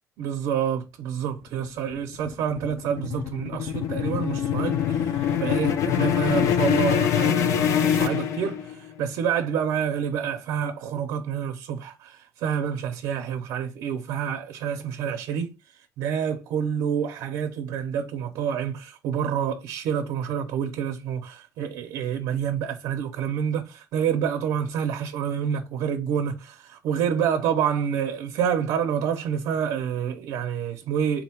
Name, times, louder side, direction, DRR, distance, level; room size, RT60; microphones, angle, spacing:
voice 1, 0.2-15.5 16.0-31.2, right 8 dB, 80° right, 0.5 m, -28 dB
sound 1, 1.7-8.9, left 9 dB, 55° left, 0.5 m, -24 dB
3.9 x 2.2 x 4.3 m
cardioid pair, 175°, 6 cm